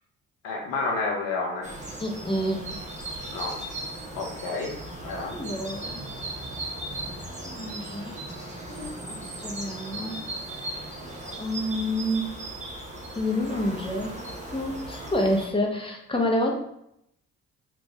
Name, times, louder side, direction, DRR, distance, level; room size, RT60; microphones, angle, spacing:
voice 1, 0.4-1.7 3.3-3.5 4.1-4.7 5.0-5.3, left 3 dB, 80° left, -1 dB, 1.1 m, -30 dB
sound 1, 1.6-15.5, right 1 dB, 20° right, 1.1 m, -37 dB
voice 2, 2.0-2.6 5.2-6.2 7.1-8.2 8.5-10.2 11.4-12.3 13.1-16.5, left 1 dB, 15° left, 0 dB, 0.9 m, -29 dB
3.7 x 2.5 x 3.2 m, 0.76 s
hypercardioid pair, 55°, 34 cm